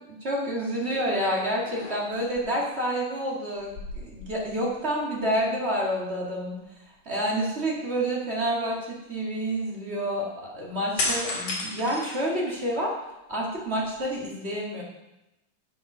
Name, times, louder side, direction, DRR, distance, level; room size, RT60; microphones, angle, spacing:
voice 1, 0.1-6.6 7.0-12.9 13.3-14.8, right 1 dB, 30° right, -4 dB, 1.3 m, -28 dB
sound 1, 0.9-1.2 1.6-2.4 3.6-4.9 5.2-5.3 11.0-12.8 13.3-14.2, left 2 dB, 50° left, 2.8 m, -33 dB
7.7 x 7.3 x 5.6 m, 0.95 s
omnidirectional pair, 3.9 m